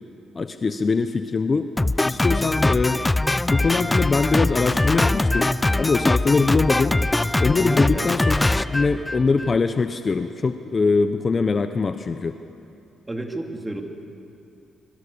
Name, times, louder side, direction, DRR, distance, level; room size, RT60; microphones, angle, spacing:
voice 1, 0.3-1.7 2.1-3.0 3.5-7.0 7.4-8.4 8.7-12.3, left 4 dB, 35° left, 9 dB, 1.0 m, -22 dB
Drum kit, 1.8-9.6, left 2 dB, 15° left, 0.5 m, -22 dB
voice 2, 7.6-8.1 13.1-13.8, right 1 dB, 15° right, 3 dB, 3.0 m, -30 dB
25.0 x 23.0 x 7.1 m, 2.7 s
cardioid pair, 90°, 0 cm